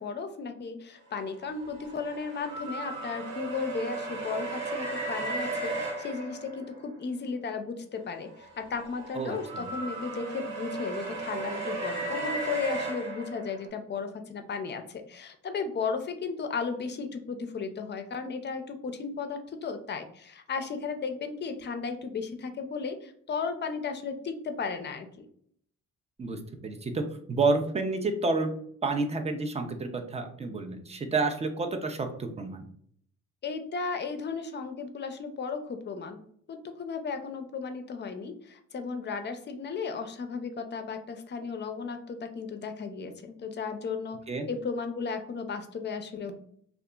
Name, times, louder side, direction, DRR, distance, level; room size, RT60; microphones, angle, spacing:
voice 1, 0.0-25.3 33.4-36.2 36.5-44.2 44.5-46.3, left 5 dB, 35° left, 7 dB, 0.4 m, -35 dB
sound 1, 1.3-7.0 8.3-13.7, right 3 dB, 60° right, 1.3 m, -35 dB
voice 2, 9.1-9.7 26.2-27.0 27.3-28.5 28.8-32.6 44.3-44.5, right 3 dB, 20° right, 6 dB, 0.4 m, -29 dB
2.7 x 2.4 x 2.2 m, 0.63 s
cardioid pair, 90°, 30 cm